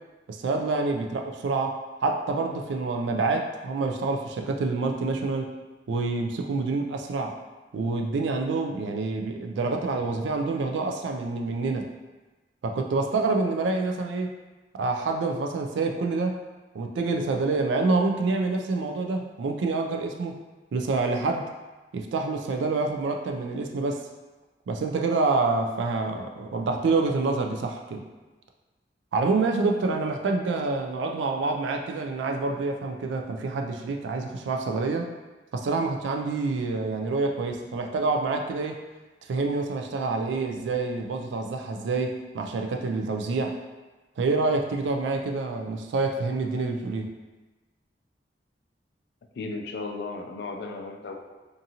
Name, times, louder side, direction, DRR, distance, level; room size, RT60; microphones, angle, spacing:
voice 1, 0.3-5.5 5.9-7.3 7.7-11.9 12.6-14.3 14.7-16.4 16.7-20.4 20.7-21.4 21.9-24.0 24.7-28.0 29.1-35.1 35.5-38.8 39.3-43.5 44.2-47.1, right 3 dB, 90° right, 3 dB, 0.3 m, -27 dB
voice 2, 49.3-51.3, left 3 dB, 70° left, 3 dB, 0.3 m, -35 dB
2.6 x 2.5 x 2.7 m, 1.2 s
head